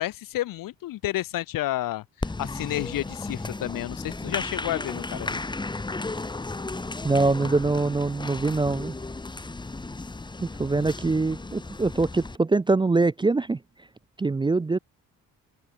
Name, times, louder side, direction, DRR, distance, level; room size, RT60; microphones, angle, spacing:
voice 1, 0.0-5.4, left 15 dB, 70° left, 0.9 m, -31 dB
Applause, 2.2-12.4, left 3 dB, 15° left, 1.2 m, -34 dB
voice 2, 7.0-8.9 10.6-13.6 14.2-14.8, right 3 dB, 15° right, 0.4 m, -23 dB
open air
cardioid pair, 105°, 34 cm